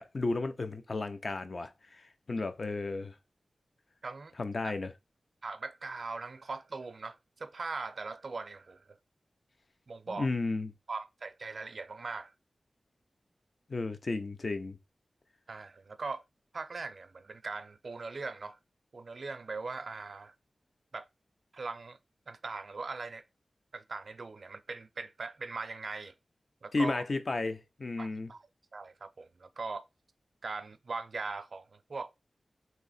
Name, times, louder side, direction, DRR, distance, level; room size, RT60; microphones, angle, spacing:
voice 1, 0.0-1.7 2.3-3.1 4.4-4.9 10.1-10.7 13.7-14.8 26.7-28.3, left 3 dB, 55° left, 0.6 m, -33 dB
voice 2, 4.0-4.3 4.6-4.7 5.4-9.0 9.9-10.3 10.9-12.3 15.5-16.2 16.5-18.6 18.9-20.3 20.9-21.1 21.5-22.0 22.3-23.2 23.7-26.1 26.6-27.0 27.9-28.4 28.7-29.9 30.4-32.1, right 4 dB, 60° right, 0.4 m, -40 dB
3.0 x 2.8 x 4.0 m
wide cardioid pair, 85°, 0 cm